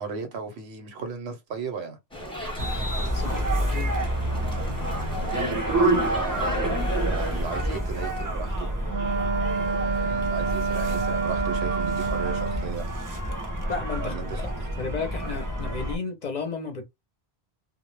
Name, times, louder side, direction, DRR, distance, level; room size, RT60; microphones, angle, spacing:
voice 1, 0.0-2.0 5.2-6.6 7.1-8.7 9.5-12.9 14.0-14.7, right 5 dB, 90° right, 1.0 m, -36 dB
sound 1, 2.1-7.8, equal, 5° left, 0.7 m, -36 dB
sound 2, 2.6-16.0, right 1 dB, 35° right, 0.3 m, -28 dB
voice 2, 3.1-3.9 13.7-14.1 14.8-16.8, left 4 dB, 50° left, 0.6 m, -33 dB
Wind instrument woodwind instrument, 8.9-12.8, right 5 dB, 60° right, 0.7 m, -28 dB
2.2 x 2.0 x 3.0 m
omnidirectional pair, 1.1 m